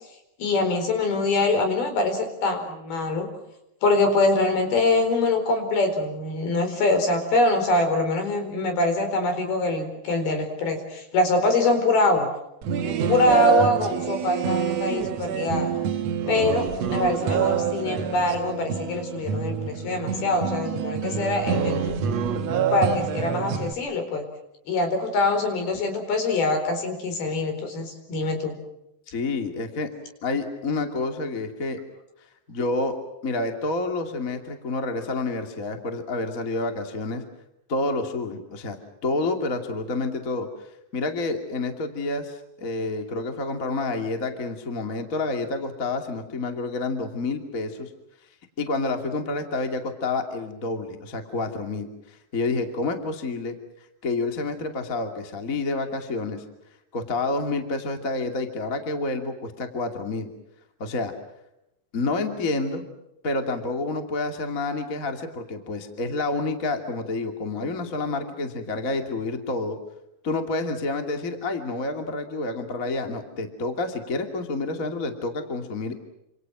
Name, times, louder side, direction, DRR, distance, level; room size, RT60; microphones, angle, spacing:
voice 1, 0.4-3.3 3.8-12.3 12.8-15.7 16.3-16.7 16.9-22.0 22.7-24.2 24.7-28.5, left 2 dB, 65° left, 7 dB, 6.2 m, -24 dB
sound 1, 12.6-23.7, right 7 dB, 70° right, 1.6 m, -26 dB
voice 2, 29.1-29.9 30.2-31.8 32.5-32.9 33.2-37.2 37.7-38.8 39.0-40.7 40.9-47.9 48.6-53.5 54.0-56.4 56.9-60.3 60.8-61.1 61.9-62.8 63.2-69.8 70.2-76.0, left 3 dB, 25° left, 5 dB, 2.2 m, -29 dB
28.5 x 27.0 x 6.1 m, 0.86 s
omnidirectional pair, 4.9 m